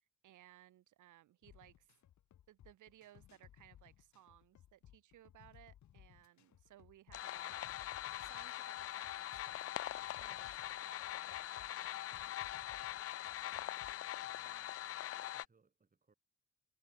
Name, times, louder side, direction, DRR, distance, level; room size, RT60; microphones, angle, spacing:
voice 1, 0.0-1.9 2.5-12.0, right 13 dB, 80° right, 3.6 m, -63 dB
sound 1, 1.4-14.1, left 11 dB, 70° left, 3.7 m, -63 dB
sound 2, 7.1-15.5, left 13 dB, 50° left, 0.5 m, -43 dB
voice 2, 14.0-14.8 15.3-16.1, right 4 dB, 25° right, 3.3 m, -74 dB
cardioid pair, 90°, 30 cm